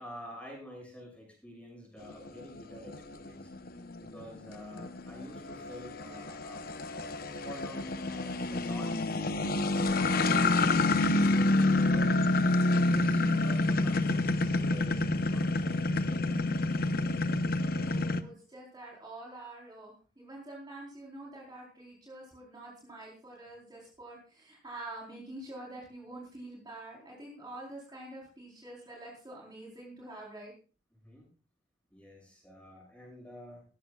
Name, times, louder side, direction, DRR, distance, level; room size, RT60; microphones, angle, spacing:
voice 1, 0.0-3.5 4.0-6.7 6.9-8.9 9.8-12.2 12.6-15.0 15.3-16.4 31.0-31.3 31.9-33.6, equal, 5° left, -1 dB, 7.5 m, -48 dB
sound 1, 2.1-18.2, left 2 dB, 55° left, 0.9 m, -28 dB
voice 2, 17.9-30.5, right 2 dB, 25° right, -3 dB, 4.1 m, -46 dB
18.5 x 14.5 x 2.4 m, 0.36 s
head